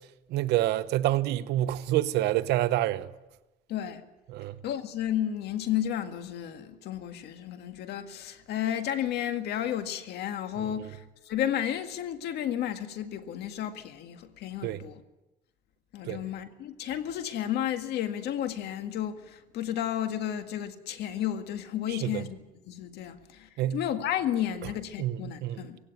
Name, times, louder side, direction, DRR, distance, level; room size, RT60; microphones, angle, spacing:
voice 1, 0.3-3.1 4.3-4.6 14.6-14.8 16.0-16.2 21.9-22.2 23.6-23.8 25.0-25.6, right 14 dB, 80° right, 0.9 m, -27 dB
voice 2, 3.7-4.0 4.6-15.0 15.9-25.8, left 10 dB, 75° left, 1.9 m, -32 dB
17.5 x 17.0 x 9.2 m
cardioid pair, 110°, 17 cm